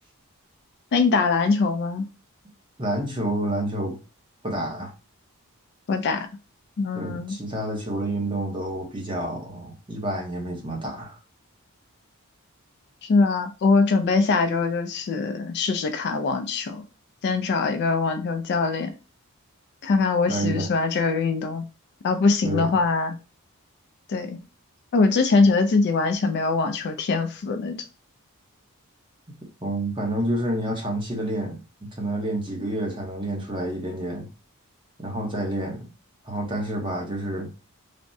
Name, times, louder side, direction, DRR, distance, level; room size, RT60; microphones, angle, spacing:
voice 1, 0.9-2.1 5.9-6.3 6.8-7.4 13.0-16.8 17.2-18.9 19.8-21.7 22.0-23.2 24.1-24.4 24.9-27.8, left 4 dB, 50° left, 0.3 m, -22 dB
voice 2, 2.8-4.0 4.4-4.9 6.9-11.2 20.3-20.7 22.4-22.7 29.6-34.3 35.0-35.9 36.3-37.5, right 1 dB, 20° right, 0.7 m, -29 dB
3.4 x 2.1 x 2.6 m
head